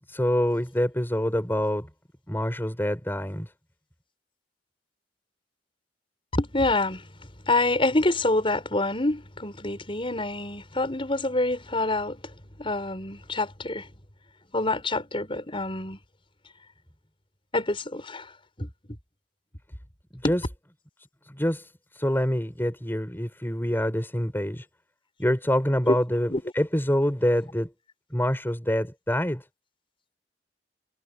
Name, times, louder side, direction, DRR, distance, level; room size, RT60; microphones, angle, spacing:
voice 1, 0.1-1.9 2.3-3.5 20.1-20.4 21.3-21.7 22.0-24.6 25.2-27.7 28.1-29.4, equal, 10° left, 4.9 m, -26 dB
voice 2, 6.3-7.1 7.4-12.2 12.6-13.9 14.5-16.0 17.5-18.3 18.6-18.7 20.2-20.3 25.9-26.0 26.3-26.4, left 2 dB, 30° left, 6.2 m, -26 dB
head